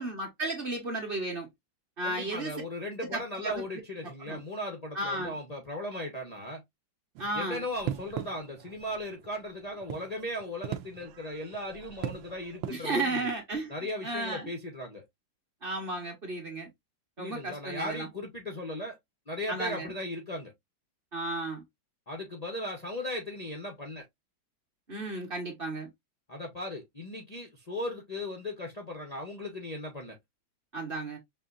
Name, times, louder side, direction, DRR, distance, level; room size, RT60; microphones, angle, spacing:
voice 1, 0.0-1.5 2.0-2.6 3.0-3.6 4.0-4.4 4.9-5.3 7.2-7.6 12.7-13.7 14.0-14.5 15.6-16.7 17.2-18.1 19.5-19.9 21.1-21.6 24.9-25.9 30.7-31.2, right 2 dB, 35° right, 0.9 m, -34 dB
voice 2, 2.0-6.6 7.3-13.3 13.7-15.0 17.2-19.0 19.3-20.5 22.1-24.0 26.3-30.2, left 1 dB, 80° left, 0.3 m, -37 dB
sound 1, 7.1-12.8, right 12 dB, 75° right, 1.3 m, -41 dB
5.5 x 2.7 x 2.4 m
omnidirectional pair, 2.2 m